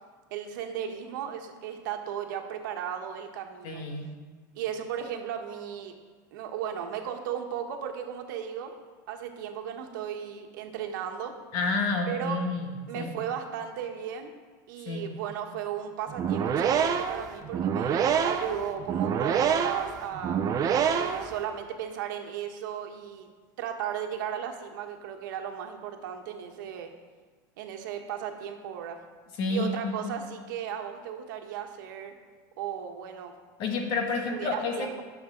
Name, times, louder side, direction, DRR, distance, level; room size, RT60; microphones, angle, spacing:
voice 1, 0.3-3.8 4.5-6.0 6.3-8.7 9.1-11.4 12.1-12.4 12.9-14.3 14.7-20.4 20.9-23.3 23.6-26.9 27.6-29.0 29.5-32.1 32.6-33.3 34.3-35.0, right 9 dB, 80° right, 4 dB, 1.3 m, -35 dB
voice 2, 3.6-4.1 11.5-12.7 12.9-13.1 14.9-15.1 29.4-30.1 33.6-34.7, left 3 dB, 55° left, 2 dB, 2.2 m, -29 dB
sound 1, 16.1-21.4, right 7 dB, 35° right, 0.9 m, -26 dB
19.5 x 7.1 x 3.9 m, 1.5 s
supercardioid pair, 120°, 10 cm